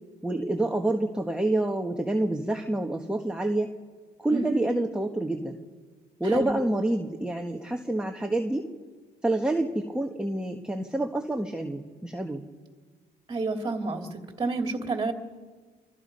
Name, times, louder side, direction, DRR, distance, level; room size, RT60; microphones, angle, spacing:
voice 1, 0.2-3.7 4.2-5.6 6.2-8.7 9.2-12.5, right 1 dB, 5° right, 2 dB, 1.4 m, -28 dB
voice 2, 6.2-6.6 13.3-15.1, right 3 dB, 20° right, 4 dB, 2.6 m, -30 dB
27.0 x 23.0 x 5.4 m, 1.5 s
cardioid pair, 110°, 17 cm